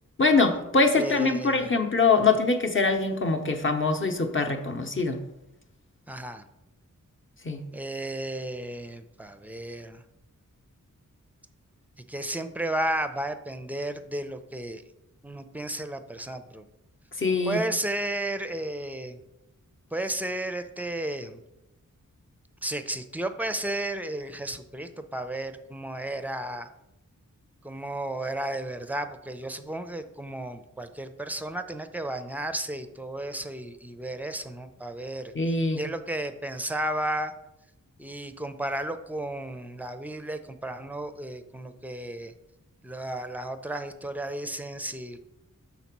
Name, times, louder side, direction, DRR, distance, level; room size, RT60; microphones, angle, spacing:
voice 1, 0.2-5.2 7.4-7.7 17.2-17.6 35.3-35.8, left 3 dB, 40° left, 5 dB, 0.8 m, -23 dB
voice 2, 1.0-1.7 6.1-6.4 7.7-10.0 12.1-14.8 15.2-16.6 17.5-19.2 19.9-21.4 22.6-26.7 27.6-35.3 35.8-37.3 38.0-42.3 42.8-45.2, right 1 dB, 5° right, 9 dB, 0.5 m, -33 dB
5.9 x 4.1 x 5.9 m, 0.91 s
wide cardioid pair, 80°, 32 cm